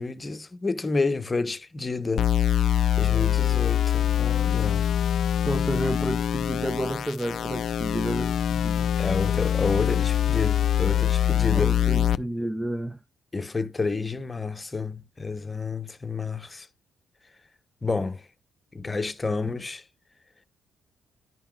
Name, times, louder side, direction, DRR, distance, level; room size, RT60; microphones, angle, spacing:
voice 1, 0.0-2.3 3.0-4.9 9.0-11.7 13.3-16.7 17.8-18.3 18.7-19.8, left 3 dB, 25° left, 0.8 m, -29 dB
sound 1, 2.2-12.2, left 10 dB, 60° left, 0.3 m, -24 dB
voice 2, 5.4-8.9 11.5-13.0, right 1 dB, 10° right, 0.4 m, -31 dB
11.0 x 5.7 x 2.3 m
cardioid pair, 90°, 0 cm